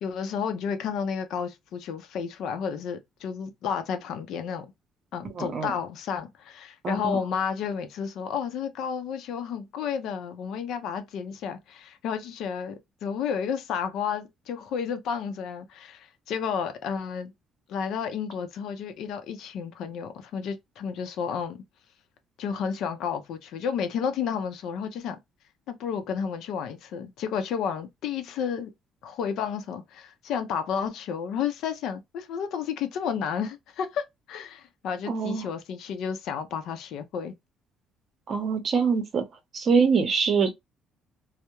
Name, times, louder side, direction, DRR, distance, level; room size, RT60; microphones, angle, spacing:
voice 1, 0.0-4.7 5.1-17.3 17.7-21.6 22.4-25.2 25.7-28.7 29.0-37.4, left 7 dB, 75° left, 0.5 m, -31 dB
voice 2, 5.3-5.7 6.8-7.2 35.1-35.5 38.3-39.2 39.5-40.5, right 5 dB, 50° right, 0.7 m, -24 dB
2.2 x 2.0 x 3.0 m
cardioid pair, 85°, 0 cm